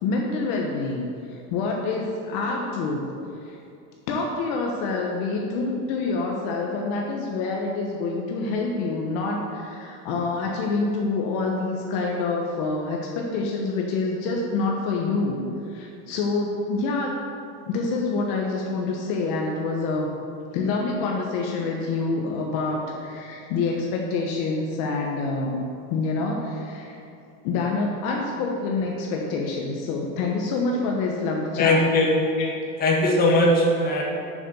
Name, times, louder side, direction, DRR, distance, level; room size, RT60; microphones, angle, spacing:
voice 1, 0.0-3.0 3.5-3.6 4.1-17.2 17.7-20.1 20.5-25.6 25.9-27.0 27.4-31.8 32.4-32.6 33.3-33.4, left 3 dB, 50° left, 0 dB, 1.1 m, -27 dB
voice 2, 31.6-32.2 32.8-34.0, left 1 dB, 20° left, -2 dB, 1.6 m, -19 dB
7.2 x 7.0 x 6.9 m, 2.6 s
supercardioid pair, 155°, 41 cm